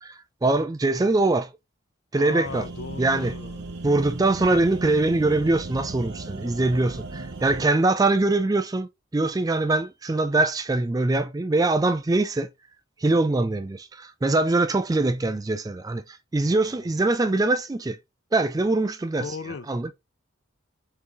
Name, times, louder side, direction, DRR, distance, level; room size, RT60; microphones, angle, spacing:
voice 1, 0.0-1.5 2.1-2.7 3.0-3.3 3.8-12.5 13.0-18.0 18.3-19.3 19.7-20.0, right 2 dB, 20° right, 0.3 m, -23 dB
voice 2, 2.2-3.7 16.6-17.0 19.2-19.7, left 5 dB, 60° left, 0.5 m, -37 dB
sound 1, 2.4-7.7, right 3 dB, 55° right, 0.6 m, -36 dB
4.7 x 3.1 x 3.4 m
head